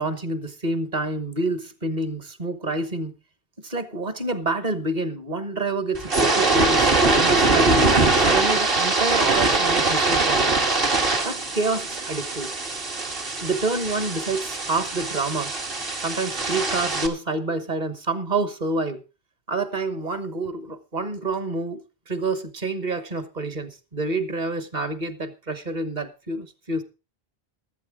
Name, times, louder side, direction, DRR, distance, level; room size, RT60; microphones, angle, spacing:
voice 1, 0.0-3.1 3.6-10.7 11.2-12.5 13.4-15.5 16.0-19.0 19.5-21.8 22.1-26.8, right 2 dB, 45° right, 10 dB, 1.3 m, -28 dB
sound 1, 5.9-17.1, right 3 dB, 60° right, 1.8 m, -22 dB
15.0 x 11.5 x 3.6 m, 0.31 s
omnidirectional pair, 1.0 m